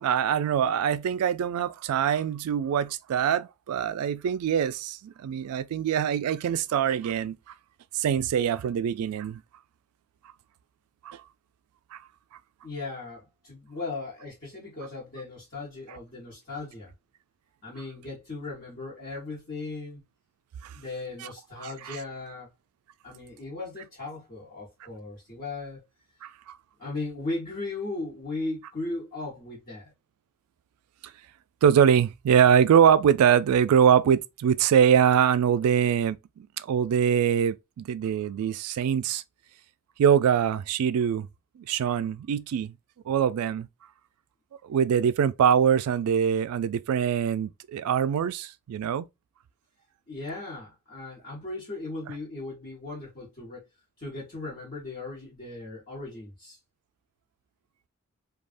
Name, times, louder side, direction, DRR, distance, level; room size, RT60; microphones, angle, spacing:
voice 1, 0.0-7.4 7.9-9.4 11.0-11.2 11.9-12.0 20.6-20.7 21.6-22.0 26.2-26.3 31.6-39.2 40.0-41.3 41.6-42.7 43.1-43.7 44.6-49.1, right 8 dB, 90° right, 0.3 m, -23 dB
voice 2, 12.6-16.9 17.6-20.0 20.7-22.5 23.0-25.8 26.8-29.9 50.1-53.6 54.0-56.6, left 2 dB, 40° left, 1.0 m, -37 dB
3.3 x 2.3 x 2.5 m
head